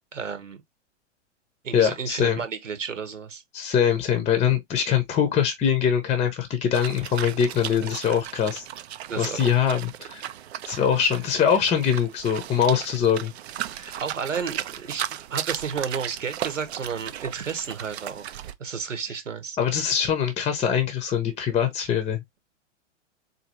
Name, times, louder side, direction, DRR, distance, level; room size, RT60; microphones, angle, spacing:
voice 1, 0.1-0.6 1.6-3.4 7.8-7.9 9.1-9.5 13.7-18.3 18.6-19.6, right 6 dB, 85° right, 1.1 m, -32 dB
voice 2, 1.7-2.4 3.5-8.7 9.2-10.3 10.7-13.3 19.6-22.2, left 8 dB, 15° left, 0.8 m, -23 dB
sound 1, 6.7-18.5, right 12 dB, 60° right, 0.6 m, -36 dB
4.1 x 2.7 x 2.9 m
figure-of-eight pair, 105°, 37 cm